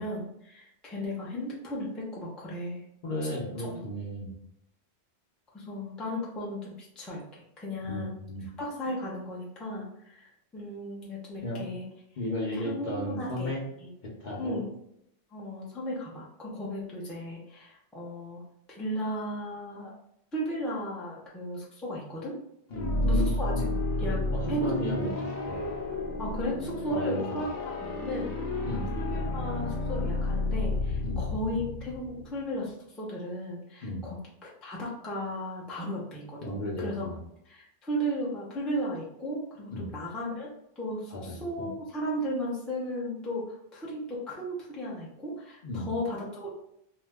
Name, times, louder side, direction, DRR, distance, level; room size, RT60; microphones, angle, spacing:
voice 1, 0.0-2.8 3.2-3.3 3.6-3.8 5.5-8.1 8.6-11.8 12.5-13.5 13.8-13.9 14.4-14.7 15.3-18.4 18.7-19.9 20.3-22.4 23.0-23.7 24.0-24.2 24.5-24.7 26.2-28.3 29.0-37.1 37.5-46.5, equal, ahead, -5 dB, 0.4 m, -35 dB
voice 2, 3.0-4.3 7.9-8.5 11.4-11.7 12.2-13.6 14.2-14.6 22.7-23.7 24.3-25.1 25.5-25.7 26.9-27.5 28.7-28.9 31.0-31.3 33.8-34.1 36.4-37.2 39.7-39.9 41.1-41.7 45.6-45.9, left 1 dB, 50° left, -3 dB, 0.7 m, -34 dB
sound 1, 22.7-32.4, left 2 dB, 70° left, 1.0 m, -31 dB
2.8 x 2.1 x 3.3 m, 0.76 s
omnidirectional pair, 1.1 m